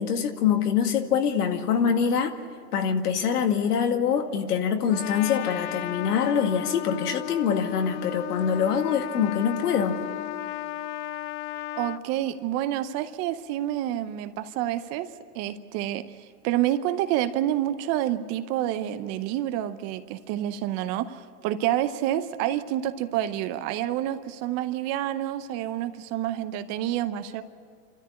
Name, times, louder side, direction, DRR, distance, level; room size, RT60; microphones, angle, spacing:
voice 1, 0.0-2.4 2.7-10.0, left 7 dB, 70° left, 6 dB, 2.1 m, -24 dB
Trumpet, 4.9-12.0, left 13 dB, 45° left, 0.6 m, -34 dB
voice 2, 11.8-27.4, right 12 dB, 35° right, 11 dB, 0.8 m, -28 dB
27.0 x 13.5 x 8.6 m, 2.4 s
hypercardioid pair, 130°, 48 cm